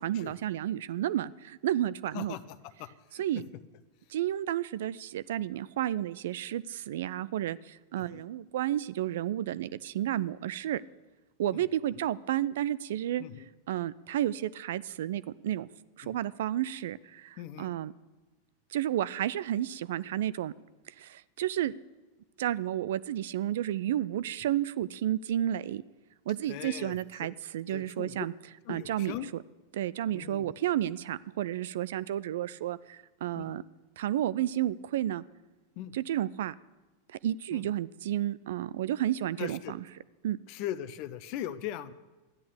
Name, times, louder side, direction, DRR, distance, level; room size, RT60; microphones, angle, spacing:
voice 1, 0.0-2.4 3.2-3.4 4.1-10.8 11.4-13.2 13.7-15.7 16.0-17.9 18.7-20.5 20.9-21.7 22.4-25.8 26.3-28.3 28.7-29.1 29.7-33.6 34.0-35.2 35.9-36.5 37.2-39.8 40.2-40.4, right 12 dB, 55° right, 19 dB, 0.4 m, -31 dB
voice 2, 2.8-3.4 8.0-8.2 11.5-11.6 13.2-13.5 16.0-16.1 17.4-17.7 26.5-27.3 27.7-28.2 28.7-29.3 30.1-30.5 33.4-33.5 35.8-36.0 37.5-37.6 39.4-39.7 40.5-41.9, left 12 dB, 45° left, 14 dB, 0.7 m, -40 dB
13.5 x 10.5 x 6.9 m, 1.2 s
figure-of-eight pair, 90°, 0 cm